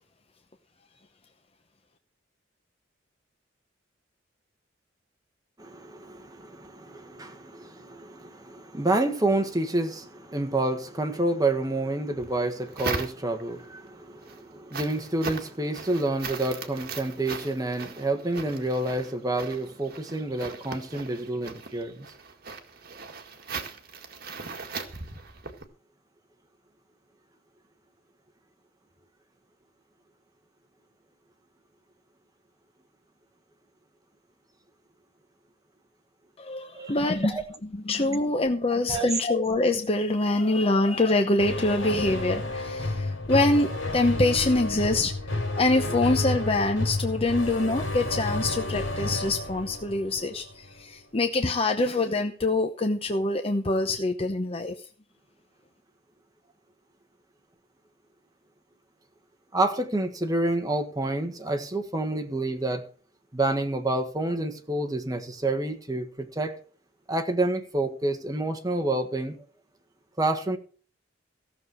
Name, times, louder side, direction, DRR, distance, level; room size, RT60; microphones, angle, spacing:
voice 1, 5.6-22.1 36.7-36.9 37.3-37.4 38.9-39.1 59.5-62.8 63.3-66.6 67.1-69.4 70.2-70.6, right 2 dB, 20° right, 1.5 m, -28 dB
sound 1, 12.1-13.6 14.1-25.6, right 4 dB, 50° right, 1.8 m, -39 dB
voice 2, 36.4-54.8, left 2 dB, 30° left, 0.9 m, -25 dB
sound 2, 41.4-50.8, left 2 dB, 85° left, 3.9 m, -31 dB
15.0 x 6.9 x 6.2 m
head